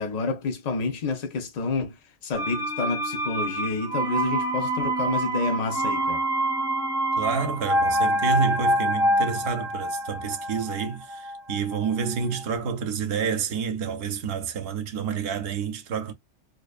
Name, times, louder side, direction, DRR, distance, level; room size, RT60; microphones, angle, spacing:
voice 1, 0.0-6.2, left 4 dB, 65° left, 0.4 m, -29 dB
sound 1, 2.3-12.1 12.4-12.5, right 1 dB, 5° right, 0.7 m, -26 dB
voice 2, 7.1-16.1, right 6 dB, 60° right, 0.7 m, -29 dB
2.6 x 2.0 x 2.4 m
omnidirectional pair, 1.4 m